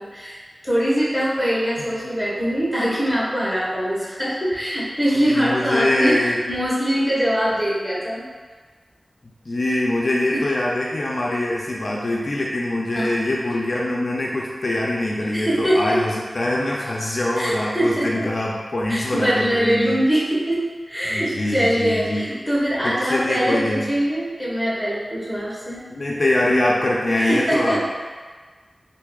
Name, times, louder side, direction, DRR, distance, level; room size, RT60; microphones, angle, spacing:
voice 1, 0.0-8.2 10.3-10.4 12.9-13.3 15.3-16.0 17.4-18.3 18.9-25.8 27.2-27.8, equal, 5° right, -7 dB, 1.2 m, -23 dB
voice 2, 5.2-6.4 9.5-20.0 21.1-22.3 22.8-23.9 25.9-27.8, left 1 dB, 60° left, -3 dB, 0.4 m, -23 dB
4.6 x 2.6 x 2.3 m, 1.5 s
cardioid pair, 45°, 0 cm